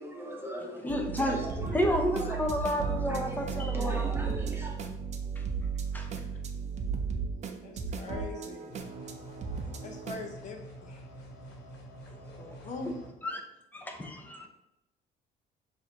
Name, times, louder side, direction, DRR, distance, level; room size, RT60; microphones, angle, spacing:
voice 1, 0.0-2.4 3.1-4.8, right 1 dB, 15° right, -1 dB, 1.0 m, -40 dB
voice 2, 0.8-4.2 5.4-5.5 5.9-6.1 12.1-12.6 13.2-13.4 13.7-14.5, equal, 10° left, 3 dB, 0.7 m, -31 dB
sound 1, 0.9-10.3, right 6 dB, 40° right, 0.6 m, -35 dB
voice 3, 7.6-8.7 9.8-11.1 12.4-13.0, left 3 dB, 45° left, 3 dB, 0.9 m, -42 dB
sound 2, 8.7-13.1, right 1 dB, 80° left, 1.2 m, -47 dB
6.5 x 2.7 x 2.9 m, 0.85 s
cardioid pair, 110°, 17 cm